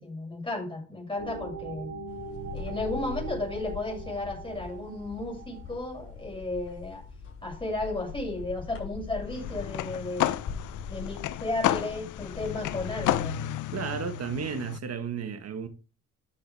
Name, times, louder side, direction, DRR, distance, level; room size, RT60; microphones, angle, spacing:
voice 1, 0.0-2.0 2.5-7.0 7.4-10.3 10.9-13.4, left 2 dB, 15° left, 7.0 m, -34 dB
sound 1, 1.2-6.2, right 4 dB, 85° right, 1.7 m, -41 dB
sound 2, 2.1-13.2, left 6 dB, 50° left, 5.0 m, -42 dB
sound 3, 9.3-14.8, left 13 dB, 80° left, 0.7 m, -32 dB
voice 2, 13.7-15.7, right 7 dB, 55° right, 1.5 m, -33 dB
13.5 x 7.4 x 3.4 m
cardioid pair, 90°, 30 cm